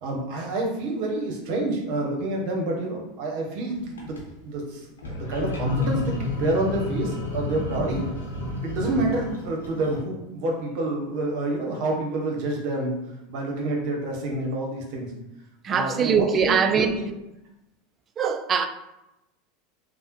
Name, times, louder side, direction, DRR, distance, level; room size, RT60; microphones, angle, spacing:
voice 1, 0.0-4.1 4.4-8.0 8.4-13.0 13.3-15.1 15.7-16.9, right 2 dB, 60° right, 0.8 m, -28 dB
sound 1, 3.8-4.2 5.0-10.0, left 3 dB, 85° left, 0.8 m, -30 dB
voice 2, 15.6-17.0 18.2-18.7, right 6 dB, 35° right, 0.3 m, -22 dB
3.4 x 2.1 x 2.9 m
hypercardioid pair, 90°, 0 cm